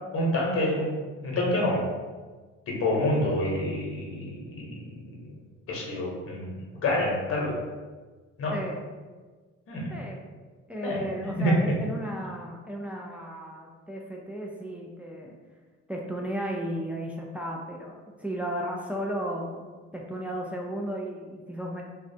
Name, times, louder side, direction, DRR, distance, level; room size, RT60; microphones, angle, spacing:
voice 1, 0.1-0.9 1.2-1.8 2.7-5.3 5.7-7.6 8.4-8.5 9.7-10.0 10.8-11.0 11.4-11.6, left 1 dB, 50° left, -3 dB, 0.8 m, -27 dB
voice 2, 8.5-8.8 9.9-10.2 10.7-15.3 15.9-19.6 19.9-21.8, equal, 5° right, -1 dB, 0.3 m, -34 dB
2.4 x 2.1 x 2.6 m, 1.4 s
supercardioid pair, 75°, 30 cm